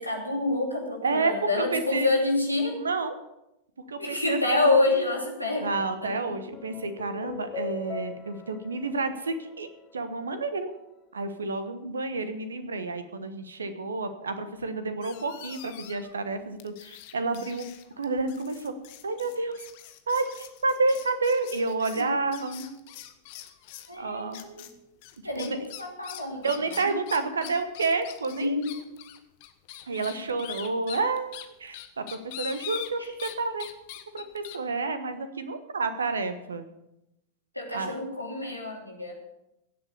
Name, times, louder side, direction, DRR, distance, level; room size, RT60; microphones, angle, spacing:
voice 1, 0.0-2.8 4.0-6.2 21.9-22.1 23.9-24.7 25.2-26.9 27.2-27.3 28.4-28.8 33.0-33.1 37.5-39.2, left 2 dB, 90° left, 0 dB, 2.9 m, -28 dB
voice 2, 1.0-2.1 2.7-3.2 3.9-4.8 5.6-9.7 9.9-10.7 11.1-17.7 18.0-18.7 19.0-19.6 20.1-22.8 23.9-24.4 25.4-25.7 26.4-28.6 29.9-31.3 31.6-33.7 34.1-36.7 37.7-37.9, right 3 dB, 70° right, 10 dB, 1.2 m, -30 dB
sound 1, 5.8-10.4, left 6 dB, 30° left, 1.0 m, -42 dB
sound 2, 15.0-16.1 16.6-24.0 24.3-24.7 25.0-33.4 33.6-34.6, left 13 dB, 50° left, 1.3 m, -43 dB
16.5 x 7.9 x 6.9 m, 0.88 s
figure-of-eight pair, 90°, 0 cm